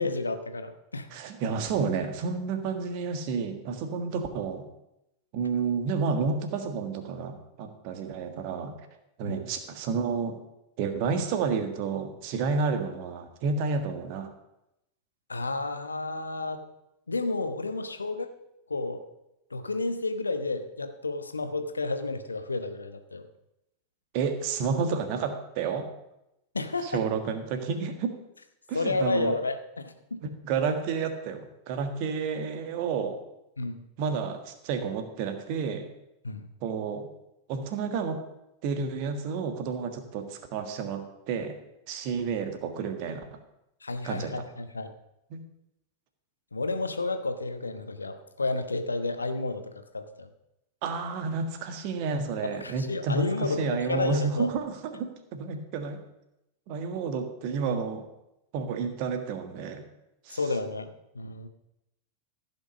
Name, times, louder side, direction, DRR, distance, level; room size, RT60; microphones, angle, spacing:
voice 1, 0.0-1.1 9.2-9.4 15.3-16.6 17.1-18.3 18.7-19.0 19.5-23.3 26.5-27.0 28.7-30.2 33.6-33.8 36.2-36.5 43.8-44.9 46.5-50.3 52.6-54.5 60.3-61.5, left 3 dB, 80° left, 9 dB, 1.0 m, -31 dB
voice 2, 1.1-4.6 5.3-8.8 9.2-10.4 10.8-14.3 24.1-25.9 26.8-28.1 28.7-29.4 30.2-33.2 34.0-35.9 36.6-37.1 37.5-38.2 38.6-41.6 41.9-43.4 44.0-44.3 45.3-45.4 50.8-56.0 56.7-58.1 58.5-59.8 60.2-60.4, right 5 dB, 45° right, 7 dB, 1.6 m, -30 dB
15.0 x 5.8 x 6.4 m, 0.88 s
figure-of-eight pair, 90°, 0 cm